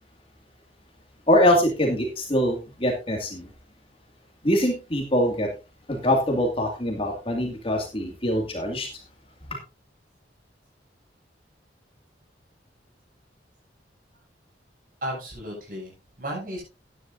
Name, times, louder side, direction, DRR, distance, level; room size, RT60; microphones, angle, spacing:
voice 1, 1.3-3.5 4.4-5.5 5.9-8.9, left 1 dB, 30° left, 1 dB, 2.2 m, -23 dB
voice 2, 15.0-16.6, equal, 50° right, -2 dB, 7.3 m, -34 dB
14.5 x 11.0 x 2.6 m, 0.30 s
head